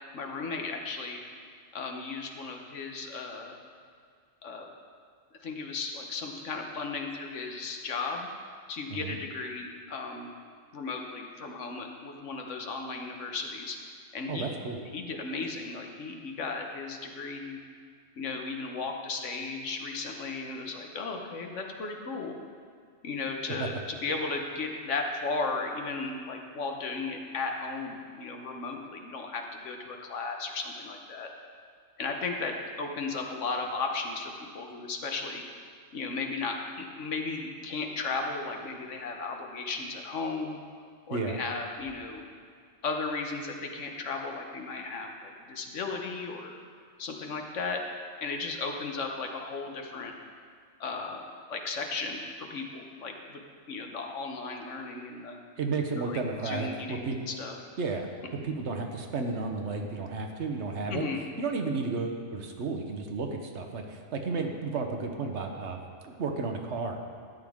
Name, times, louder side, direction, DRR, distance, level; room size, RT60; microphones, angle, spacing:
voice 1, 0.1-1.2 1.7-3.6 4.4-4.7 5.4-8.3 8.7-10.3 10.7-13.8 14.1-14.5 14.9-17.6 18.2-22.4 23.0-31.3 32.0-35.4 35.9-40.6 41.1-42.2 42.8-46.6 47.0-47.8 48.2-50.1 50.8-53.4 53.7-55.4 56.0-57.6 60.9-61.2, left 4 dB, 85° left, 3 dB, 1.4 m, -35 dB
voice 2, 14.3-14.8 23.6-23.7 41.1-41.4 55.6-57.2 57.8-61.0 61.4-65.8 66.0-67.0, right 4 dB, 70° right, 3 dB, 1.2 m, -32 dB
12.5 x 9.2 x 3.6 m, 2.2 s
omnidirectional pair, 1.2 m